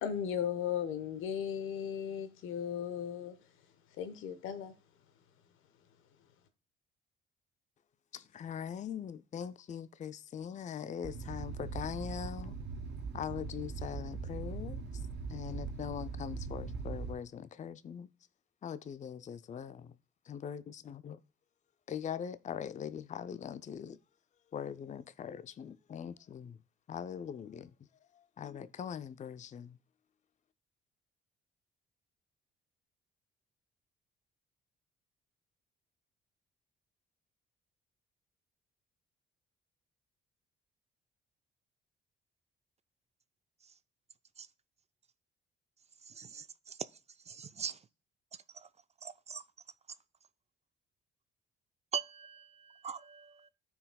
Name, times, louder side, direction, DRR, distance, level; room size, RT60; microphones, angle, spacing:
voice 1, 0.0-3.3 4.0-4.7, left 8 dB, 75° left, 1.0 m, -36 dB
voice 2, 8.1-12.6 13.1-14.8 15.3-18.1 18.6-19.9 20.3-21.2 21.9-24.0 24.5-26.6 26.9-27.7 28.4-29.8, left 8 dB, 35° left, 0.5 m, -41 dB
sound 1, 11.0-17.1, right 4 dB, 55° right, 1.7 m, -41 dB
voice 3, 46.1-46.8 47.3-47.8 48.5-48.7 49.0-49.4 51.9-53.5, right 7 dB, 30° right, 0.4 m, -42 dB
13.5 x 4.7 x 2.2 m
supercardioid pair, 60°, 21 cm